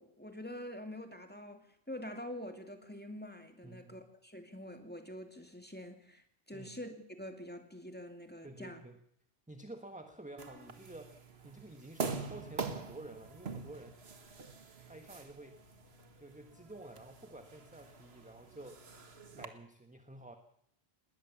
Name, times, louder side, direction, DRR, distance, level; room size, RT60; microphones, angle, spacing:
voice 1, 0.0-8.8, left 1 dB, 10° left, 5 dB, 2.4 m, -46 dB
voice 2, 3.6-4.0 6.5-6.7 8.4-9.0 9.5-14.0 14.8-15.6 16.2-18.8 19.3-20.4, right 2 dB, 5° right, 6 dB, 1.3 m, -51 dB
sound 1, 10.4-19.5, right 4 dB, 70° right, 1.8 m, -44 dB
20.0 x 18.5 x 7.2 m, 0.69 s
omnidirectional pair, 1.1 m